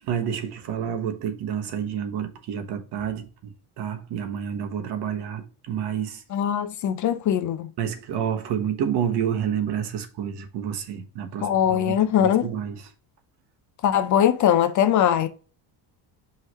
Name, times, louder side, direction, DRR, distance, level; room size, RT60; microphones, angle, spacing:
voice 1, 0.0-6.2 7.8-12.9, right 8 dB, 60° right, 1.2 m, -29 dB
voice 2, 6.3-7.7 11.4-12.5 13.8-15.3, left 10 dB, 40° left, 0.5 m, -21 dB
5.5 x 3.2 x 5.5 m
cardioid pair, 170°, 46 cm